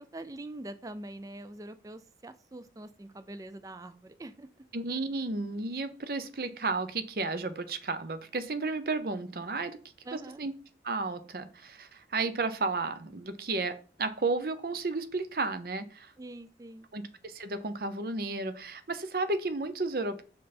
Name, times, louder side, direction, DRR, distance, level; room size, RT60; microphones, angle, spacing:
voice 1, 0.0-4.5 10.0-10.4 16.2-16.9, right 1 dB, 20° right, 12 dB, 0.3 m, -44 dB
voice 2, 4.7-9.8 10.1-10.5 10.8-16.1 16.9-20.2, right 3 dB, 55° right, 10 dB, 0.7 m, -33 dB
5.4 x 5.4 x 4.2 m, 0.38 s
head